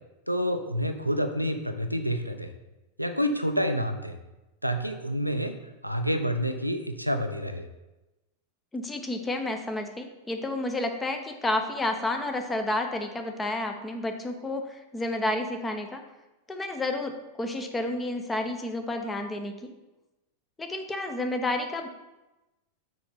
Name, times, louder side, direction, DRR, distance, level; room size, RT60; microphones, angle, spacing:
voice 1, 0.3-2.5 3.0-4.2 4.6-5.5 5.8-7.7, equal, 90° right, 7 dB, 0.6 m, -28 dB
voice 2, 8.7-16.0 16.5-19.5 20.6-21.9, left 2 dB, 10° left, 4 dB, 0.9 m, -30 dB
6.2 x 4.5 x 5.6 m, 1.0 s
figure-of-eight pair, 90°, 0 cm